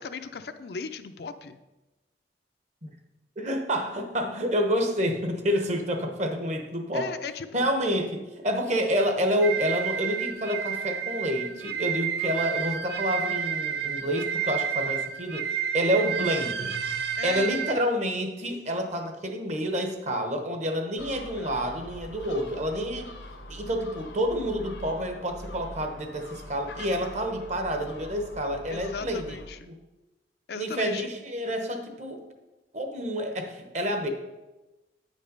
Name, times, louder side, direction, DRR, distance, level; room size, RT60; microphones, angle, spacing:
voice 1, 0.0-1.6 6.9-7.6 17.2-17.5 28.7-29.6 30.5-31.1, left 5 dB, 60° left, 9 dB, 0.5 m, -37 dB
voice 2, 3.4-7.1 7.5-15.5 15.7-16.7 17.2-23.1 23.5-29.4 29.7-29.8 30.6-32.2 32.7-34.1, equal, 40° right, 5 dB, 1.0 m, -28 dB
sound 1, 9.4-17.7, right 8 dB, 65° right, 0.5 m, -30 dB
Gull seagull, 21.0-29.5, left 1 dB, 85° left, 1.0 m, -43 dB
9.1 x 5.3 x 5.3 m, 1.1 s
head